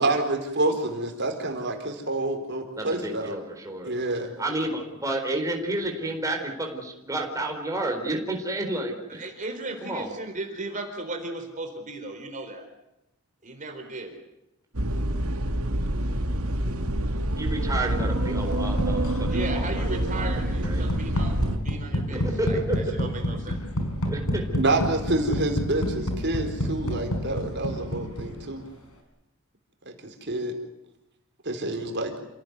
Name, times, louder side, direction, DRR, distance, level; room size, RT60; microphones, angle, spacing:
voice 1, 0.0-3.4 3.8-4.3 24.6-28.6 29.9-30.5 31.4-32.1, right 2 dB, 55° right, 4 dB, 4.3 m, -27 dB
voice 2, 2.8-3.9 4.4-9.2 9.8-10.1 17.4-20.8 22.1-22.8 24.1-24.4, right 1 dB, 15° right, 2 dB, 4.4 m, -31 dB
voice 3, 9.2-12.7 13.4-14.1 19.3-23.6, right 2 dB, 35° right, 4 dB, 4.1 m, -36 dB
sound 1, 14.7-21.6, right 1 dB, 85° right, 2.3 m, -27 dB
sound 2, 17.7-28.6, equal, 80° left, 5.6 m, -30 dB
28.5 x 18.0 x 9.5 m, 0.89 s
head